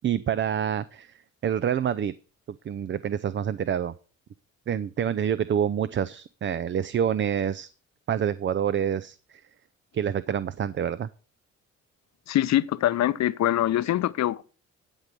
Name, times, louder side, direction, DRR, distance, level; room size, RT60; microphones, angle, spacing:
voice 1, 0.0-1.1 1.4-2.1 2.6-3.9 4.7-7.7 8.1-9.4 9.9-11.1, right 9 dB, 40° right, 0.5 m, -27 dB
voice 2, 12.3-14.4, left 13 dB, 65° left, 0.7 m, -24 dB
11.5 x 5.3 x 6.0 m
cardioid pair, 90°, 30 cm